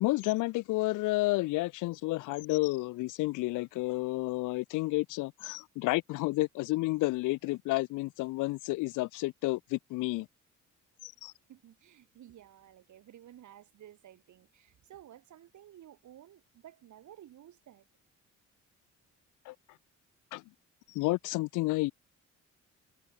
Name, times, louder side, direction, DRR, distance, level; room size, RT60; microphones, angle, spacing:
voice 1, 0.0-10.3 11.0-11.3 19.5-19.6 20.3-20.4 20.9-21.9, left 20 dB, 90° left, 0.5 m, -31 dB
voice 2, 11.5-17.9, right 11 dB, 75° right, 6.1 m, -54 dB
cardioid pair, 90°, 30 cm